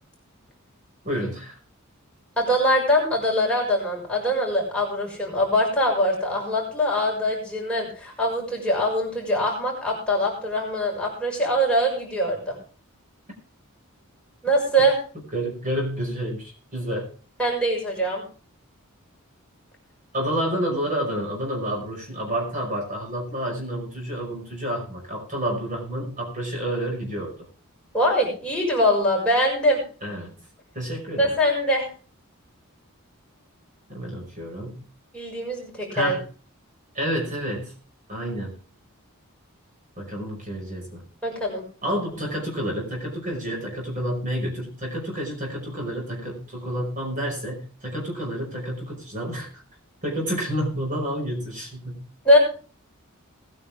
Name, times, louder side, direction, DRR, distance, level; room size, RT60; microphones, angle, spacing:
voice 1, 1.0-1.6 15.3-17.1 20.1-27.3 30.0-30.3 30.7-31.4 33.9-34.8 35.9-36.2 36.9-37.7 38.1-38.6 40.0-41.0 41.8-49.5 50.0-52.0, equal, 40° right, -1 dB, 5.5 m, -29 dB
voice 2, 2.4-12.5 14.4-15.0 17.4-18.2 27.9-29.8 31.2-31.9 35.1-36.2 41.2-41.6 52.2-52.4, equal, 5° left, -3 dB, 6.0 m, -22 dB
20.0 x 9.7 x 3.6 m, 0.38 s
head